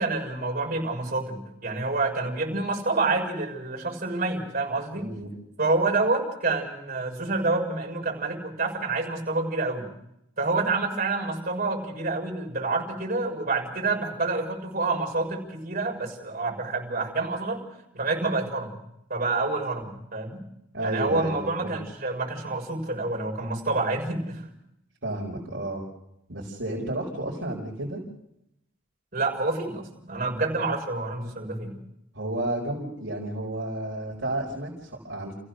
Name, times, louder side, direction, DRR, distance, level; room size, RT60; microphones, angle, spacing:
voice 1, 0.0-5.1 5.6-9.9 10.4-17.6 17.9-18.7 19.1-20.4 20.8-24.4 29.1-31.7, right 3 dB, 45° right, 0 dB, 6.6 m, -28 dB
voice 2, 4.9-5.3 20.7-21.8 25.0-25.8 26.3-28.0 32.1-35.3, right 1 dB, 65° right, -3 dB, 4.9 m, -32 dB
29.0 x 16.0 x 6.6 m, 0.81 s
head